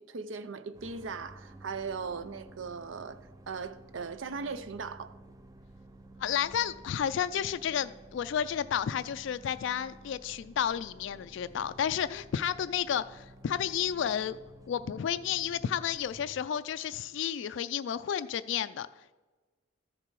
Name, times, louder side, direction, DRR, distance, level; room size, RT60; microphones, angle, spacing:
voice 1, 0.0-5.2, right 5 dB, 75° right, 0.6 m, -39 dB
sound 1, 0.7-16.5, right 1 dB, 20° right, 0.4 m, -53 dB
voice 2, 6.2-14.4 14.7-19.1, left 9 dB, 65° left, 0.3 m, -32 dB
13.5 x 6.7 x 4.7 m
head